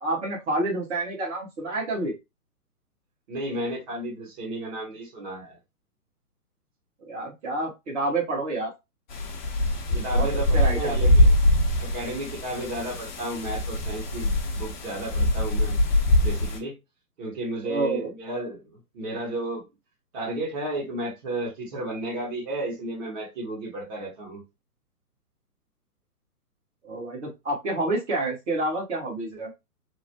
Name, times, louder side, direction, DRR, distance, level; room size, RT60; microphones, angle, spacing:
voice 1, 0.0-2.1 7.0-8.7 9.9-10.3 10.5-11.1 17.6-18.1 26.8-29.5, right 2 dB, 50° right, 1.4 m, -28 dB
voice 2, 3.3-5.6 9.9-11.3 11.8-15.8 16.2-16.8 17.2-19.6 20.1-24.4, right 1 dB, 30° right, 1.1 m, -33 dB
sound 1, 9.1-16.6, left 1 dB, 30° left, 0.6 m, -23 dB
3.0 x 2.1 x 2.7 m
figure-of-eight pair, 125°, 47 cm